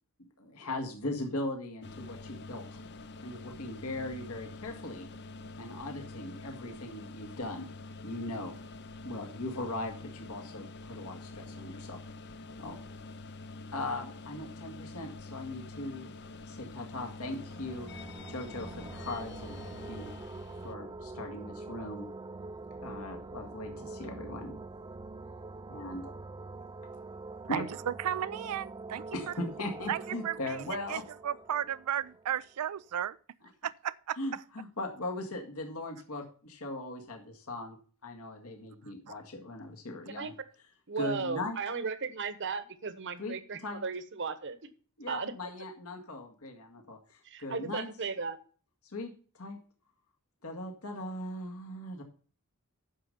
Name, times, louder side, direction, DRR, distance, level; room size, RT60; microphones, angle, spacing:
voice 1, 0.4-2.8 3.2-5.1 5.6-7.7 8.0-8.5 9.0-12.0 12.6-12.8 13.7-16.1 16.5-20.1 20.6-22.1 22.8-24.5 25.7-26.1 27.5-27.6 29.1-31.0 34.2-37.8 38.0-40.3 41.0-41.6 43.2-43.4 43.6-43.8 45.0-47.9 48.9-49.6 50.4-52.0, left 2 dB, 75° left, 1.8 m, -39 dB
sound 1, 1.8-20.7, left 3 dB, 50° left, 0.6 m, -46 dB
sound 2, 17.3-32.9, right 3 dB, 20° right, 0.4 m, -45 dB
voice 2, 27.5-29.3 29.9-30.6 30.9-33.2 33.6-34.4 39.1-39.2, right 9 dB, 85° right, 0.4 m, -34 dB
voice 3, 40.9-44.6 45.1-45.3 47.2-48.4, right 4 dB, 55° right, 1.2 m, -36 dB
10.0 x 6.4 x 5.4 m
head